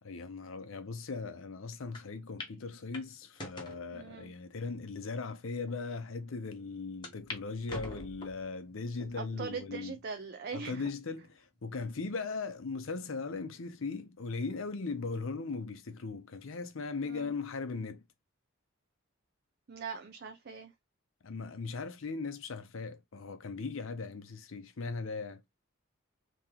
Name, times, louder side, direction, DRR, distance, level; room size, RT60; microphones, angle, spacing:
voice 1, 0.0-10.0 10.5-18.0 21.2-25.4, left 4 dB, 70° left, 0.6 m, -38 dB
sound 1, 1.9-2.0 2.4-2.5 2.9-3.8 4.5-4.6 5.3-5.4 5.7-5.8 7.0-7.4 7.7-8.5 9.0-9.4 10.0-10.1 11.2-11.6, left 2 dB, 20° left, 1.2 m, -44 dB
voice 2, 3.9-4.3 9.1-10.9 17.0-17.3 19.7-20.7, right 5 dB, 50° right, 0.5 m, -41 dB
3.0 x 2.9 x 3.7 m
head